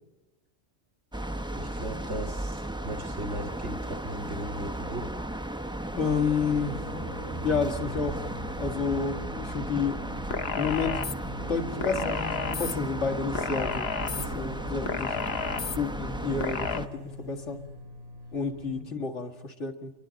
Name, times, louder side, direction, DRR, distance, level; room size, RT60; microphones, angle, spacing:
sound 1, 1.1-16.9, right 1 dB, 5° right, 0.7 m, -35 dB
voice 1, 1.5-5.1 18.7-18.9, right 1 dB, 70° right, 3 dB, 2.4 m, -37 dB
voice 2, 6.0-6.8 7.4-8.2 8.6-10.0 10.6-11.0 11.5-12.2 12.6-15.2 15.8-17.6 18.3-19.9, left 5 dB, 85° left, 4 dB, 2.3 m, -30 dB
sound 2, 6.5-18.8, left 1 dB, 35° right, 1.5 m, -43 dB
sound 3, 10.3-11.1 11.8-12.7 13.3-14.3 14.9-15.8 16.4-16.8, left 6 dB, 65° left, 1.3 m, -32 dB
28.5 x 23.0 x 5.2 m, 1.1 s
omnidirectional pair, 1.2 m